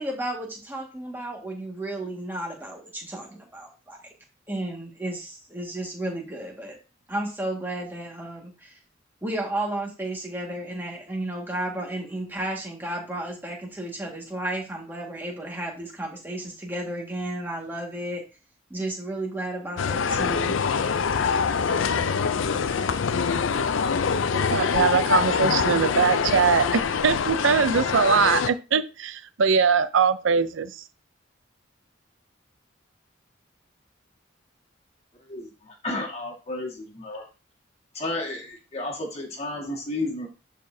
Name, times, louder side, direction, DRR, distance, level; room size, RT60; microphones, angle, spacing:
voice 1, 0.0-4.0 4.5-6.8 7.1-8.8 9.2-18.2 18.7-20.6, right 1 dB, 10° right, -1 dB, 1.8 m, -33 dB
sound 1, 19.8-28.5, left 6 dB, 85° left, 0.5 m, -24 dB
voice 2, 24.3-30.8, right 6 dB, 80° right, 14 dB, 0.6 m, -22 dB
voice 3, 35.3-37.3 37.9-40.3, left 2 dB, 35° left, 0 dB, 1.9 m, -32 dB
11.5 x 4.2 x 2.8 m, 0.31 s
head